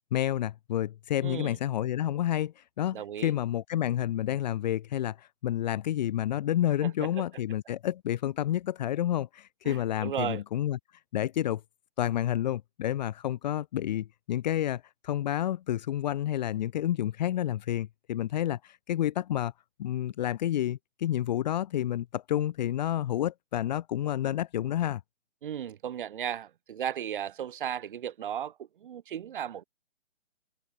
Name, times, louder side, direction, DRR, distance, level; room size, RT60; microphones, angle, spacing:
voice 1, 0.1-10.8 11.1-11.6 12.0-19.5 19.8-25.0, left 12 dB, 35° left, 2.5 m, -29 dB
voice 2, 1.2-1.6 2.9-3.3 6.8-7.2 9.6-10.4 25.4-29.6, right 9 dB, 40° right, 2.4 m, -35 dB
open air
hypercardioid pair, 155°, 38 cm